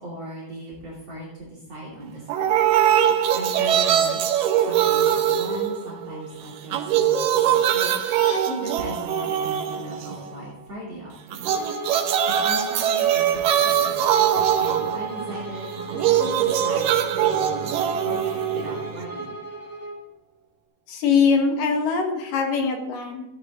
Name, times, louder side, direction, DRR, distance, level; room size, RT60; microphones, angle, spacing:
voice 1, 0.0-2.5 3.3-4.2 4.6-8.0 8.5-19.4, right 1 dB, 45° right, -6 dB, 3.7 m, -38 dB
sound 1, 2.3-6.3 6.6-10.3 11.3-19.3, right 9 dB, 75° right, 2.5 m, -22 dB
sound 2, 7.6-8.4, left 2 dB, 45° left, 4.3 m, -41 dB
Bowed string instrument, 11.5-20.0, right 2 dB, 15° left, 2.2 m, -36 dB
voice 2, 20.9-23.3, left 5 dB, 70° left, 3 dB, 3.2 m, -22 dB
14.5 x 10.5 x 3.8 m, 0.94 s
omnidirectional pair, 4.1 m